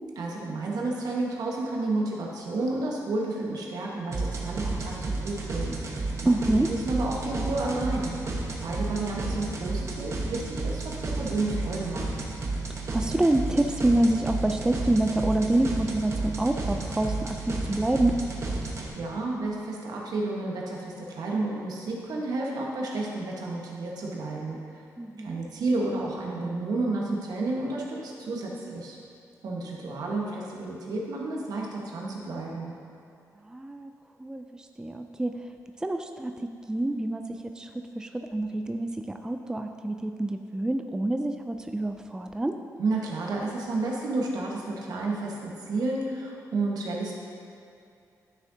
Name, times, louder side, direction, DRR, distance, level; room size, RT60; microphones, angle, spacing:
voice 1, 0.2-6.3 6.7-8.2 8.6-12.1 18.9-24.7 25.2-29.0 29.4-32.8 42.8-47.1, right 2 dB, 75° right, -2 dB, 1.3 m, -31 dB
sound 1, 4.1-18.9, right 3 dB, 45° right, 1.1 m, -32 dB
voice 2, 6.3-6.7 12.9-18.1 25.0-25.4 33.5-33.9 34.2-34.4 34.8-35.3 35.8-37.2 37.6-37.7 38.0-42.5, right 1 dB, 10° right, 6 dB, 0.4 m, -27 dB
10.5 x 6.2 x 2.8 m, 2.5 s
cardioid pair, 80°, 7 cm